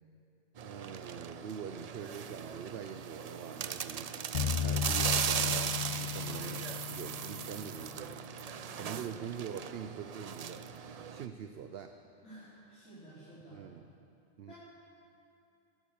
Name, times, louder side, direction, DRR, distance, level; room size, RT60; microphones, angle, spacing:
voice 1, 0.6-4.1 4.6-8.2 8.7-10.7 11.1-12.0 13.5-13.9 14.4-14.5, right 8 dB, 60° right, 7 dB, 0.8 m, -44 dB
sound 1, 0.6-11.3, right 7 dB, 90° right, 0.3 m, -38 dB
sound 2, 4.3-8.1, left 8 dB, 80° left, 0.3 m, -35 dB
voice 2, 8.6-9.0 12.2-13.6 14.5-14.6, right 1 dB, 65° left, -13 dB, 5.3 m, -52 dB
21.5 x 9.4 x 7.1 m, 2.8 s
omnidirectional pair, 1.3 m